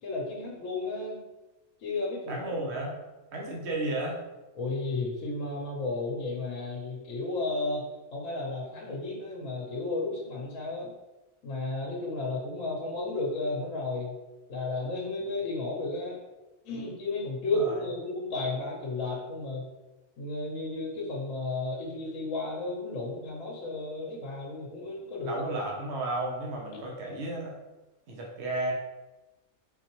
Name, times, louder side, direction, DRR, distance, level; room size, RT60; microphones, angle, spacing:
voice 1, 0.0-1.2 1.8-2.6 4.6-10.9 11.4-14.2 14.5-16.2 16.6-19.7 20.2-25.4 26.7-26.8, left 2 dB, 70° left, -2 dB, 1.1 m, -33 dB
voice 2, 2.3-3.0 3.3-4.2 17.5-17.8 25.2-27.5 28.1-28.7, right 2 dB, 55° right, -2 dB, 1.1 m, -33 dB
4.2 x 3.8 x 3.0 m, 1.1 s
omnidirectional pair, 1.4 m